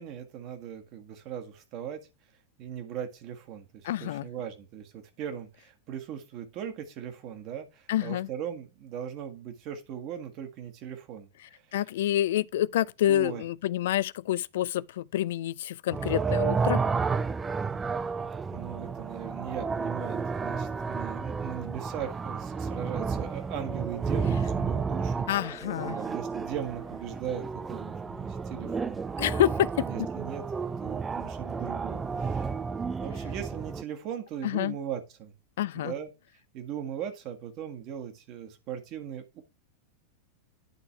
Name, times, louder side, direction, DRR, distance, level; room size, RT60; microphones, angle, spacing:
voice 1, 0.0-2.0 2.6-11.3 13.1-13.4 18.5-25.3 25.8-29.0 29.8-30.4 30.8-32.5 33.0-35.3 35.7-36.1 36.5-39.4, right 9 dB, 40° right, 1.6 m, -39 dB
voice 2, 3.8-4.3 7.9-8.3 11.7-16.8 25.3-26.0 29.2-29.9 34.4-34.8 35.6-35.9, left 12 dB, 55° left, 0.3 m, -28 dB
sound 1, 15.9-33.8, right 5 dB, 15° right, 0.4 m, -32 dB
9.8 x 4.1 x 4.5 m
figure-of-eight pair, 90°, 0 cm